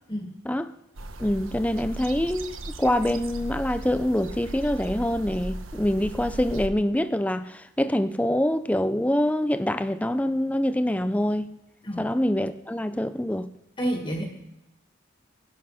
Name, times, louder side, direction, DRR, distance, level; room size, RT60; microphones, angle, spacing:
sound 1, 1.0-6.7, right 1 dB, 85° right, 1.2 m, -37 dB
voice 1, 1.2-11.5 12.0-13.5, left 1 dB, 5° left, 0.5 m, -25 dB
voice 2, 13.8-14.3, right 1 dB, 25° left, 1.9 m, -29 dB
19.5 x 11.5 x 5.8 m
head